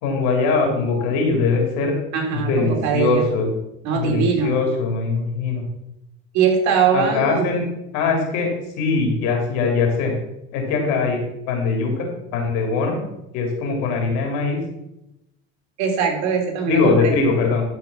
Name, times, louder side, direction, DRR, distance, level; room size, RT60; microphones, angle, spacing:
voice 1, 0.0-1.9 2.3-3.5 3.9-5.7 6.9-7.7 7.9-8.5 8.8-10.1 10.5-11.2 11.5-12.1 12.3-13.0 13.3-14.6 16.7-17.6, left 4 dB, 75° left, 2 dB, 3.7 m, -21 dB
voice 2, 2.1-3.2 3.8-4.6 6.3-7.5 15.8-17.1, right 6 dB, 65° right, 1 dB, 3.3 m, -21 dB
12.5 x 5.6 x 5.8 m, 0.88 s
supercardioid pair, 115°, 30 cm